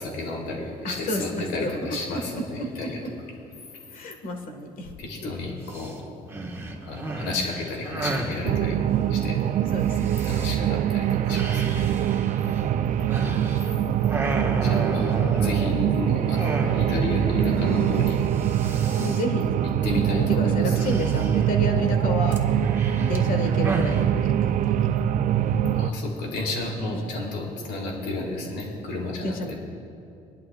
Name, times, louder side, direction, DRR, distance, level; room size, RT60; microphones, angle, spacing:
voice 1, 0.0-3.0 5.0-6.0 6.8-8.8 9.1-9.4 10.2-11.9 14.6-18.2 19.8-20.7 25.8-29.5, left 2 dB, 80° left, -1 dB, 3.1 m, -32 dB
voice 2, 0.8-3.1 3.9-4.9 5.2-5.3 9.7-10.3 11.4-11.9 14.9-16.1 16.6-16.9 19.0-19.6 20.1-22.5 22.9-24.9 26.8-27.1 29.2-29.5, left 1 dB, 55° left, 4 dB, 1.7 m, -32 dB
sound 1, 5.7-5.9 6.3-8.4 9.9-10.6 11.3-13.7 14.0-15.9 16.4-17.1 17.4-17.5 17.8-18.1 18.3-19.2 20.7-21.6 22.3-24.0, right 2 dB, 15° right, 1.4 m, -33 dB
sound 2, 8.4-25.9, right 10 dB, 50° right, 0.4 m, -23 dB
22.5 x 11.5 x 2.4 m, 2.7 s
cardioid pair, 110°, 17 cm